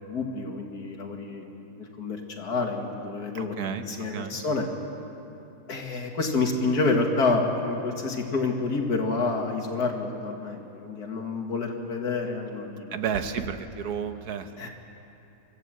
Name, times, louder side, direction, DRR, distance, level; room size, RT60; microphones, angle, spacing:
voice 1, 0.1-1.4 2.0-3.5 3.9-4.7 5.7-12.9 14.6-14.7, left 3 dB, 85° left, 2 dB, 2.6 m, -28 dB
voice 2, 3.3-3.9 4.1-4.4 12.9-14.5, right 7 dB, 80° right, 8 dB, 1.5 m, -31 dB
24.5 x 15.0 x 7.7 m, 2.9 s
omnidirectional pair, 1.6 m